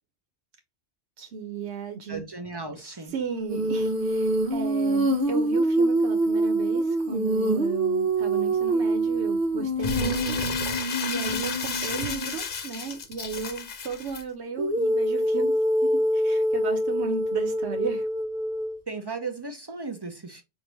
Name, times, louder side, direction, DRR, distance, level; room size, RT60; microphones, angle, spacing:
voice 1, 1.2-2.3 2.8-10.4 11.1-15.5 15.8-18.1, right 6 dB, 85° right, 1.0 m, -35 dB
voice 2, 2.1-3.1 18.9-20.4, right 4 dB, 30° right, 0.5 m, -36 dB
Female singing, 3.5-12.4 14.6-18.8, right 1 dB, 60° right, 1.0 m, -25 dB
Crumpling crinkling, 9.8-14.2, left 5 dB, 55° left, 0.8 m, -32 dB
4.6 x 2.5 x 3.0 m
omnidirectional pair, 1.1 m